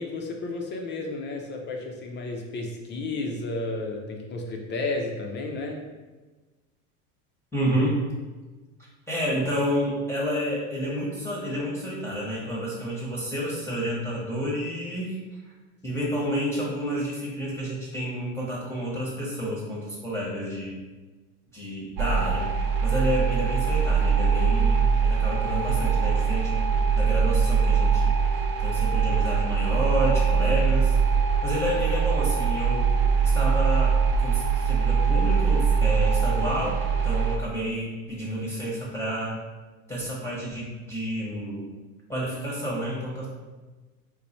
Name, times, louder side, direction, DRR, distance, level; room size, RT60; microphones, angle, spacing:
voice 1, 0.0-5.8, left 2 dB, 25° left, 1 dB, 0.4 m, -32 dB
voice 2, 7.5-8.1 9.1-15.5 15.8-20.8 21.5-22.4 22.8-31.0 31.4-32.9 33.2-39.4 39.9-41.6 42.1-43.3, equal, 5° left, -6 dB, 0.8 m, -30 dB
sound 1, 22.0-37.4, right 5 dB, 55° right, 0.7 m, -22 dB
3.0 x 2.2 x 4.0 m, 1.2 s
hypercardioid pair, 100°, 43 cm